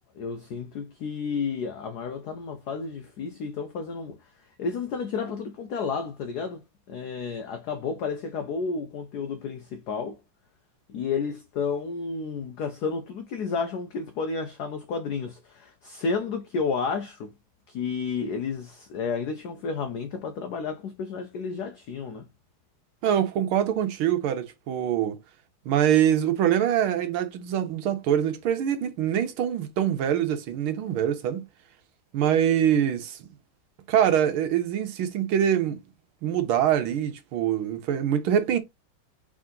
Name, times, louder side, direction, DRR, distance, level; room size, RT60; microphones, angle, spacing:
voice 1, 0.2-4.2 4.6-10.2 10.9-17.3 17.7-22.3, left 5 dB, 85° left, 0.8 m, -31 dB
voice 2, 23.0-25.2 25.6-31.5 32.1-33.3 33.9-35.8 36.2-38.6, right 10 dB, 75° right, 1.7 m, -24 dB
3.7 x 3.6 x 3.7 m
omnidirectional pair, 2.4 m